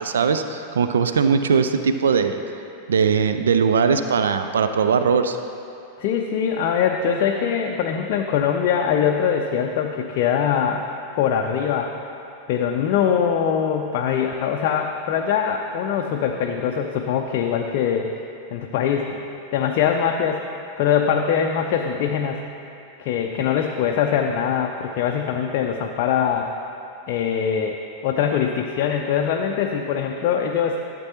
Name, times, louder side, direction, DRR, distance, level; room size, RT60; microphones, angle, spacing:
voice 1, 0.0-2.4 2.9-5.4, right 6 dB, 65° right, 9 dB, 0.3 m, -20 dB
voice 2, 6.0-10.8 11.2-11.9 12.5-18.1 18.5-19.2 19.5-20.4 20.8-22.4 23.0-26.5 27.1-30.8, left 8 dB, 45° left, 2 dB, 0.4 m, -22 dB
12.5 x 7.4 x 2.9 m, 2.7 s
figure-of-eight pair, 90°, 0 cm